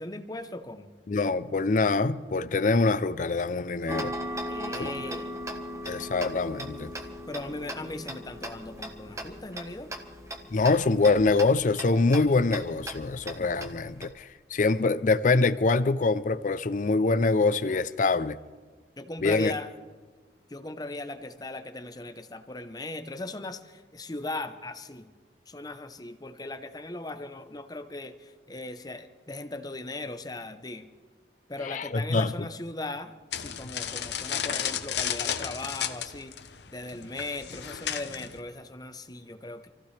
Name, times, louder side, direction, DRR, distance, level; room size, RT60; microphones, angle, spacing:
voice 1, 0.0-0.9 4.5-5.4 7.3-9.9 19.0-19.7 20.5-25.1 25.5-30.9 31.5-36.3 36.7-39.7, left 2 dB, 20° left, 0.8 m, -38 dB
voice 2, 1.1-4.1 4.8-4.9 5.9-6.9 10.5-18.4 19.2-19.5 31.6-32.3, left 3 dB, 45° left, 0.5 m, -24 dB
Tick-tock, 3.9-14.1, equal, 15° right, 1.2 m, -38 dB
sound 1, 33.3-38.4, left 9 dB, 70° left, 0.8 m, -33 dB
27.0 x 15.0 x 3.3 m
head